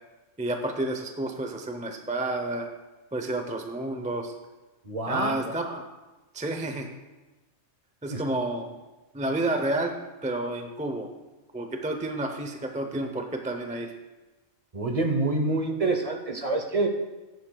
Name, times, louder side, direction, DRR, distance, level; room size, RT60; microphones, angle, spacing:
voice 1, 0.4-2.7 3.1-4.3 5.1-5.8 6.3-6.9 8.0-8.7 9.1-9.9 10.2-11.1 11.5-13.9, right 2 dB, 10° right, 5 dB, 0.4 m, -30 dB
voice 2, 4.9-5.3 8.1-8.2 14.7-16.9, right 2 dB, 30° right, 4 dB, 0.8 m, -26 dB
14.5 x 10.5 x 2.3 m, 1.1 s
omnidirectional pair, 1.5 m